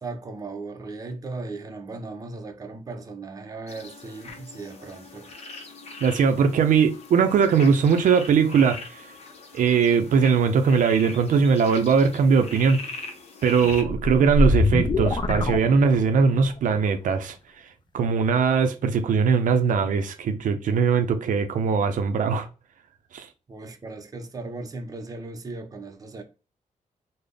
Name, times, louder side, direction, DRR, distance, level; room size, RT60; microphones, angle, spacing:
voice 1, 0.0-5.3 23.5-26.2, right 3 dB, 25° right, 0.5 m, -37 dB
sound 1, 3.7-13.8, left 3 dB, 50° left, 0.7 m, -41 dB
voice 2, 6.0-9.0 9.5-12.9 13.4-17.4 17.9-22.5 23.1-23.3, right 6 dB, 75° right, 0.4 m, -20 dB
sound 2, 13.6-16.3, left 2 dB, 35° left, 0.4 m, -24 dB
3.8 x 2.0 x 3.3 m
wide cardioid pair, 135°, 14 cm